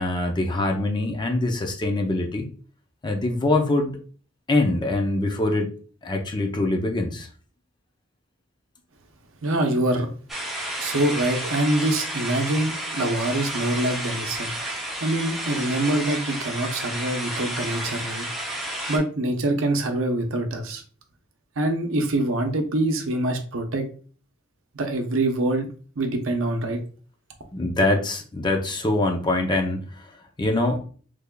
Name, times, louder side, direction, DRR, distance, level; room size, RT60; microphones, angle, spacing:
voice 1, 0.0-2.5 3.0-4.0 4.5-5.7 6.0-7.3 27.5-30.1 30.4-30.8, left 2 dB, 20° left, 3 dB, 0.5 m, -24 dB
voice 2, 9.4-10.1 10.8-18.3 18.6-20.8 21.6-23.9 24.7-25.7 26.0-26.8, right 1 dB, 70° right, 5 dB, 0.7 m, -25 dB
sound 1, 10.3-19.0, right 1 dB, ahead, 0.8 m, -31 dB
3.6 x 3.2 x 2.2 m, 0.41 s
head